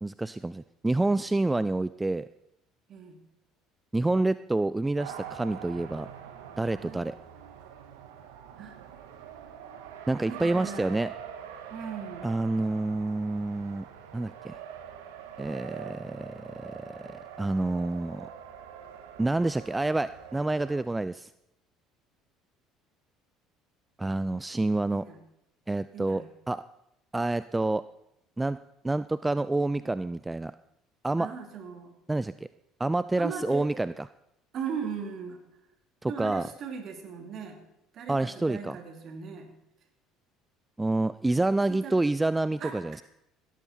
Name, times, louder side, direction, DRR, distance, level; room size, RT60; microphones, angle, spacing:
voice 1, 0.0-2.3 3.9-6.1 6.6-7.1 10.1-11.1 12.2-13.9 14.1-14.6 15.4-18.3 19.2-21.3 24.0-25.1 25.7-26.6 27.1-27.8 28.4-28.6 28.8-30.5 31.0-31.3 32.1-32.3 32.8-34.1 36.0-36.5 38.1-38.8 40.8-43.0, right 2 dB, 15° right, 15 dB, 0.4 m, -28 dB
Race car auto racing, 5.0-20.8, right 8 dB, 75° right, 1.5 m, -44 dB
voice 2, 10.3-10.9 11.7-12.3 15.7-16.0 24.9-25.2 25.9-26.3 31.2-31.9 33.2-33.7 34.5-35.4 36.1-37.6 37.9-39.5 41.7-42.0 42.6-42.8, right 6 dB, 50° right, 5 dB, 2.7 m, -38 dB
16.5 x 13.5 x 4.4 m, 0.81 s
hypercardioid pair, 60°, 0 cm